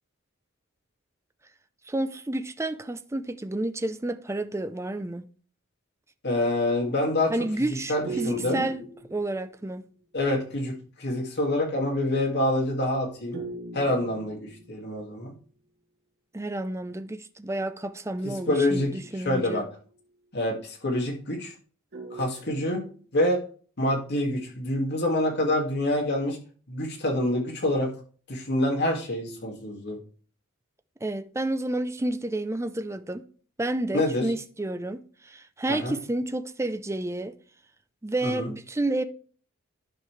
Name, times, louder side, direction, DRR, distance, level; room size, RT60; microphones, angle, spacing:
voice 1, 1.9-5.3 7.3-8.8 9.1-9.8 16.3-19.6 31.0-33.2 33.6-37.3 38.0-39.0, right 2 dB, 15° right, 0.5 m, -30 dB
voice 2, 6.2-7.4 7.7-8.7 10.1-13.4 13.7-15.3 18.2-18.9 19.2-19.7 20.3-21.5 22.1-22.8 23.1-23.4 23.8-26.4 26.7-27.9 28.3-30.0 33.9-34.2 35.7-35.9 38.2-38.5, left 1 dB, 55° left, 2.2 m, -26 dB
sound 1, 8.0-9.8 13.3-15.2 18.5-20.0 21.9-23.1, right 3 dB, 50° right, 1.9 m, -40 dB
11.0 x 5.3 x 3.3 m
head